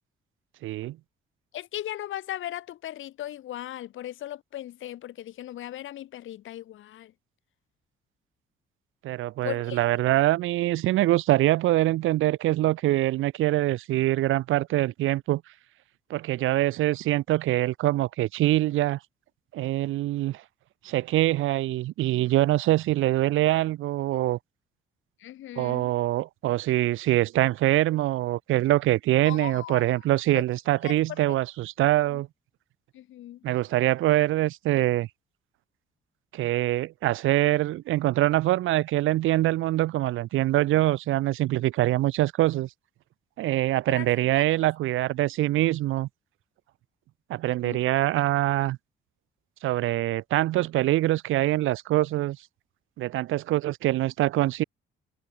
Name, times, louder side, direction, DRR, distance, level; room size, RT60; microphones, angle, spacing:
voice 1, 0.6-1.0 9.0-15.4 16.1-19.0 19.5-20.4 20.8-24.4 25.6-32.3 33.4-35.1 36.3-42.7 43.4-46.1 47.3-48.8 49.6-52.4 53.0-54.6, right 16 dB, 85° right, 1.8 m, -24 dB
voice 2, 1.5-7.1 9.4-9.8 25.2-25.9 29.2-29.8 30.3-30.4 30.8-30.9 32.1-32.2 32.9-33.5 43.9-44.4 47.6-47.8, left 13 dB, 80° left, 6.6 m, -37 dB
cardioid pair, 90°, 20 cm